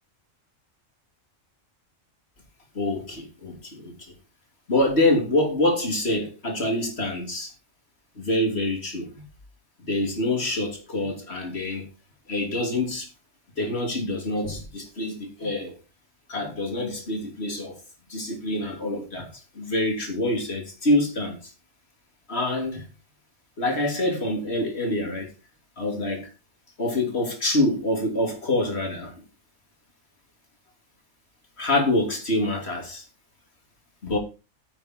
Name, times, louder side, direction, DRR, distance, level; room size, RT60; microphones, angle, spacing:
voice 1, 2.7-4.1 4.7-7.5 8.2-9.2 9.8-11.9 12.3-13.1 13.6-15.7 16.3-17.8 18.1-19.3 19.5-21.5 22.3-22.8 23.6-25.3 25.8-26.3 26.8-29.1 31.6-33.0 34.0-34.2, left 1 dB, 55° left, 3.3 m, -26 dB
9.9 x 8.2 x 4.5 m
omnidirectional pair, 1.3 m